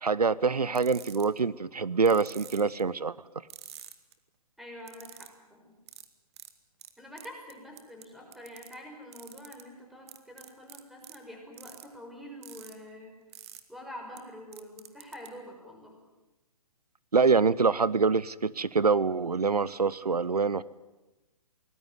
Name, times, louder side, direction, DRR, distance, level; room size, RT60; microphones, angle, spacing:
voice 1, 0.0-3.1 17.1-20.6, right 5 dB, 85° right, 20 dB, 0.8 m, -25 dB
sound 1, 0.7-1.4 2.1-2.8 3.5-4.1 4.9-5.3 5.9-6.1 6.4-6.5 6.8-6.9 7.2-8.0 8.3-8.7 9.1-9.6 10.1-11.2 11.5-11.8 12.4-12.7 13.3-13.6 14.2-14.3 14.5-15.3, right 11 dB, 45° right, 2.3 m, -47 dB
voice 2, 4.6-5.7 7.0-13.1 13.7-15.9, equal, ahead, 1 dB, 5.9 m, -46 dB
24.0 x 19.5 x 9.6 m, 1.1 s
figure-of-eight pair, 130°, 19 cm